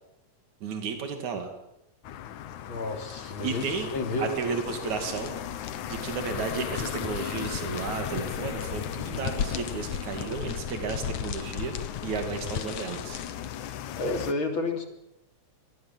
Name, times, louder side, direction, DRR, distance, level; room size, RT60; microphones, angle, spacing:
voice 1, 0.6-1.5 3.4-3.9 4.2-5.3 5.9-11.8 12.0-13.2, right 5 dB, 75° right, 5 dB, 3.9 m, -33 dB
sound 1, 2.0-14.3, left 11 dB, 85° left, 2.6 m, -38 dB
voice 2, 2.7-3.7 3.9-4.4 14.0-14.8, left 2 dB, 40° left, 5 dB, 3.7 m, -30 dB
sound 2, 3.1-13.8, left 8 dB, 70° left, 2.6 m, -37 dB
26.0 x 20.0 x 7.6 m, 0.84 s
omnidirectional pair, 3.3 m